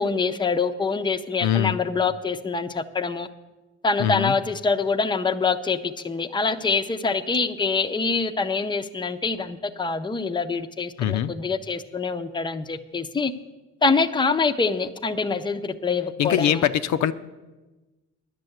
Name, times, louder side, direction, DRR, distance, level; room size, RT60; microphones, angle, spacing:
voice 1, 0.0-3.3 3.8-13.3 13.8-16.7, left 4 dB, 15° left, 9 dB, 0.6 m, -25 dB
voice 2, 1.4-1.8 4.0-4.3 11.0-11.3 16.2-17.1, left 10 dB, 70° left, 11 dB, 0.5 m, -22 dB
10.5 x 6.7 x 7.9 m, 1.1 s
cardioid pair, 90°, 30 cm